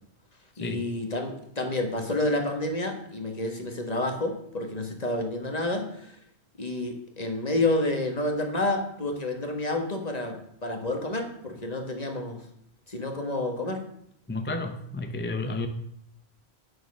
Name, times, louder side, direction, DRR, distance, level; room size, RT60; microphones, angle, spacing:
voice 1, 0.6-6.2 6.6-12.4 12.9-13.8, left 2 dB, 40° left, 4 dB, 1.5 m, -29 dB
voice 2, 14.3-15.7, left 2 dB, 15° left, 6 dB, 0.5 m, -31 dB
9.1 x 6.6 x 6.2 m, 0.72 s
omnidirectional pair, 1.1 m